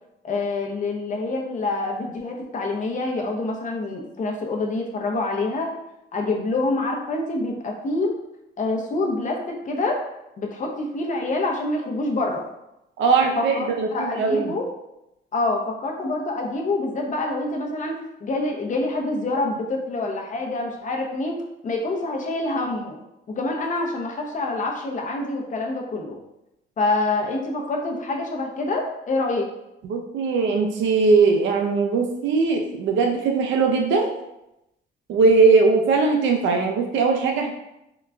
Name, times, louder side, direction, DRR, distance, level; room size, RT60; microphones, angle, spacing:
voice 1, 0.2-5.7 6.1-8.2 8.6-10.0 10.4-12.4 13.4-14.7 15.3-23.0 23.3-26.2 26.8-29.5, left 2 dB, 40° left, 1 dB, 0.6 m, -26 dB
voice 2, 13.0-14.5 29.8-34.1 35.1-37.5, right 4 dB, 70° right, 3 dB, 0.4 m, -20 dB
3.7 x 2.1 x 2.4 m, 0.88 s
cardioid pair, 90°, 20 cm